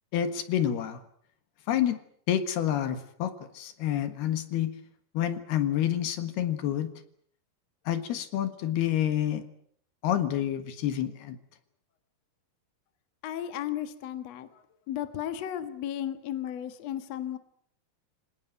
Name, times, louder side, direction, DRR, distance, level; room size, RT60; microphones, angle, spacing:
voice 1, 0.1-1.0 1.7-2.0 2.3-4.7 5.2-6.9 7.9-9.5 10.0-11.4, left 10 dB, 75° left, 10 dB, 3.6 m, -28 dB
voice 2, 13.2-17.4, left 11 dB, 55° left, 10 dB, 2.2 m, -35 dB
25.5 x 18.5 x 9.2 m, 0.66 s
omnidirectional pair, 4.7 m